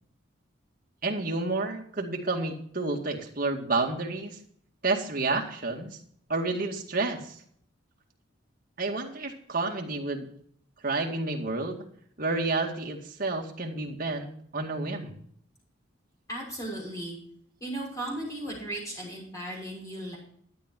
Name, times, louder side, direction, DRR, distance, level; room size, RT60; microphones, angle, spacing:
voice 1, 1.0-4.4 4.8-6.0 6.3-7.4 8.8-10.3 10.8-11.8 12.2-15.2, right 3 dB, 45° right, 1 dB, 2.1 m, -30 dB
voice 2, 16.3-17.2 17.6-20.2, right 1 dB, 15° left, -2 dB, 6.1 m, -36 dB
12.5 x 9.6 x 4.5 m, 0.62 s
head